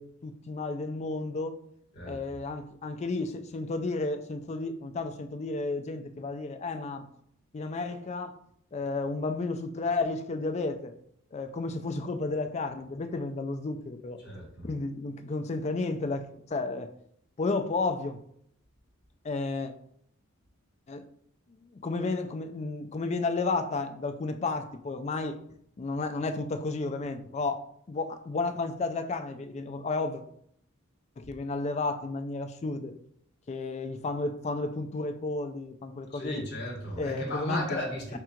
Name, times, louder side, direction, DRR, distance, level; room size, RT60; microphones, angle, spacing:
voice 1, 0.0-1.6 2.1-7.1 7.5-8.4 8.7-10.9 11.3-14.2 14.6-16.9 17.4-18.2 19.2-19.7 20.9-21.0 21.5-25.4 25.8-30.2 31.2-32.9 33.5-36.5 37.0-37.8, left 3 dB, 30° left, 7 dB, 0.3 m, -32 dB
voice 2, 14.2-14.7 36.1-38.2, left 1 dB, 50° left, -1 dB, 1.3 m, -35 dB
3.7 x 2.4 x 4.4 m, 0.69 s
head